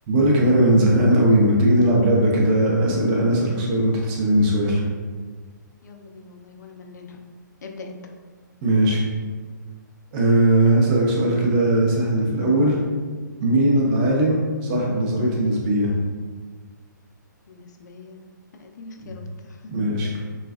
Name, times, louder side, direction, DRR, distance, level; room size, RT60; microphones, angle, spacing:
voice 1, 0.1-4.8 8.6-9.0 10.1-12.8 13.4-15.9 19.7-20.1, right 1 dB, 30° right, -3 dB, 0.6 m, -19 dB
voice 2, 5.8-7.2 7.6-8.1 17.5-18.3 18.5-19.6, left 3 dB, 60° left, 4 dB, 0.4 m, -42 dB
3.3 x 2.3 x 2.3 m, 1.5 s
figure-of-eight pair, 135°, 10 cm